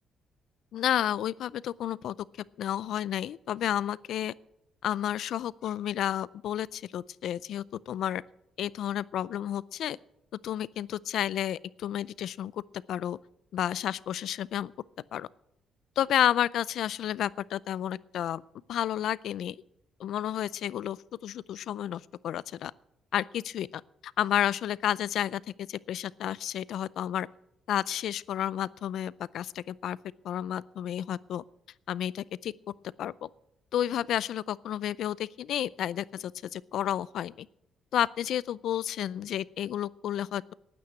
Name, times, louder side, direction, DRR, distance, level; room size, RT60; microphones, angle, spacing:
voice 1, 0.7-2.1 2.6-4.3 4.8-8.2 8.6-10.0 10.4-12.6 12.9-13.2 13.5-14.7 15.1-15.3 16.0-18.4 18.7-19.6 20.0-22.7 23.1-27.3 27.7-30.0 30.2-31.4 31.9-32.5 33.0-33.3 33.7-37.5 37.9-40.5, left 11 dB, 75° left, 21 dB, 0.4 m, -31 dB
12.5 x 9.4 x 8.4 m, 0.81 s
cardioid pair, 90°, 0 cm